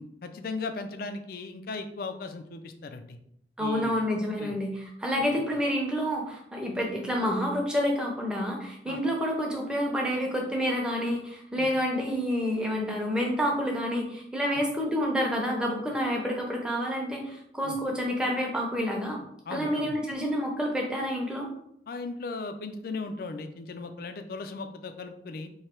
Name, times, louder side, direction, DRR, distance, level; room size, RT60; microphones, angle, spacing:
voice 1, 0.0-3.2 3.6-4.0 4.4-4.5 5.2-5.4 8.9-9.0 11.6-11.7 14.5-14.6 17.6-17.8 19.5-20.0 21.9-25.5, left 3 dB, 55° left, 8 dB, 0.4 m, -37 dB
voice 2, 3.6-19.2 19.5-21.5, equal, 5° right, -1 dB, 0.7 m, -28 dB
3.1 x 2.8 x 4.4 m, 0.73 s
head